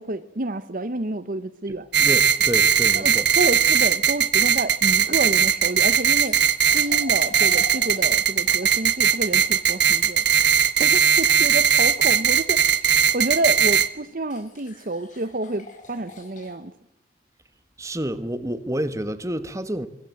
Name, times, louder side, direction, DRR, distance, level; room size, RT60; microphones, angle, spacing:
voice 1, 0.0-1.9 2.9-6.4 6.7-10.2 10.8-12.6 13.1-16.7, right 2 dB, 45° right, 1.0 m, -29 dB
voice 2, 1.7-3.3 17.8-19.9, right 1 dB, 15° right, 1.4 m, -29 dB
sound 1, 1.9-13.9, right 8 dB, 70° right, 1.2 m, -19 dB
sound 2, 4.6-10.0 13.1-13.2 14.3-16.6, left 3 dB, 45° left, 5.6 m, -45 dB
24.5 x 21.5 x 7.7 m
head